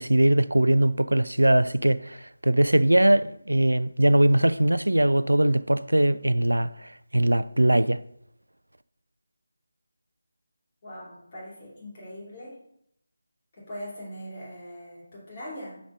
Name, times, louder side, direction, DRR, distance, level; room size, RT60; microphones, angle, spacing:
voice 1, 0.0-8.0, right 1 dB, 75° right, 0.3 m, -21 dB
voice 2, 10.8-12.6 13.5-15.8, equal, 30° left, 3.1 m, -41 dB
6.0 x 5.1 x 5.0 m
figure-of-eight pair, 155°, 0 cm